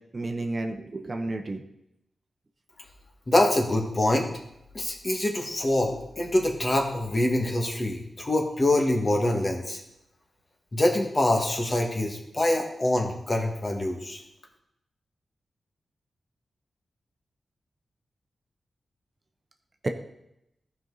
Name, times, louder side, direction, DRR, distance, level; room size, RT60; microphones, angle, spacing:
voice 1, 0.1-1.6 19.8-19.9, right 2 dB, 35° right, 4 dB, 0.9 m, -31 dB
voice 2, 3.3-4.3 4.7-9.8 10.7-14.2, left 1 dB, 35° left, 1 dB, 1.7 m, -25 dB
14.5 x 5.3 x 4.0 m, 0.82 s
wide cardioid pair, 90°, 0 cm